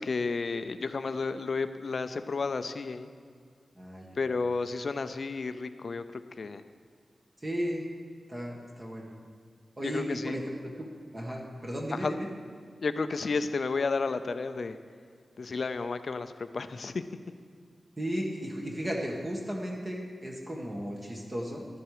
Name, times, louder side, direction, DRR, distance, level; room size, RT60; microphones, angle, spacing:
voice 1, 0.0-3.1 4.2-6.6 9.8-10.4 11.9-12.2 12.8-14.8 15.4-17.0, left 4 dB, 55° left, 10 dB, 0.6 m, -32 dB
voice 2, 3.7-4.2 7.4-7.9 8.3-9.2 9.8-12.3 18.0-21.6, equal, 20° right, -1 dB, 1.6 m, -35 dB
12.0 x 10.5 x 4.9 m, 2.1 s
wide cardioid pair, 105°, 0 cm